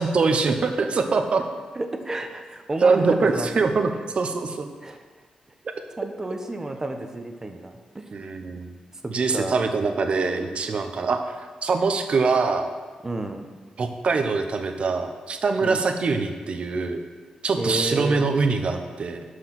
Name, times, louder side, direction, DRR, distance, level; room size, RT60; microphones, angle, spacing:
voice 1, 0.0-1.4 2.8-3.9 4.2-4.7 8.1-8.7 9.1-12.7 13.8-17.0 17.4-19.2, right 4 dB, 50° right, 6 dB, 1.0 m, -23 dB
voice 2, 1.7-3.7 4.8-5.0 6.0-8.1 9.0-9.7 13.0-13.5 15.6-15.8 17.6-18.2, right 2 dB, 20° right, 5 dB, 1.0 m, -31 dB
12.0 x 4.8 x 6.0 m, 1.4 s
cardioid pair, 90°, 2 cm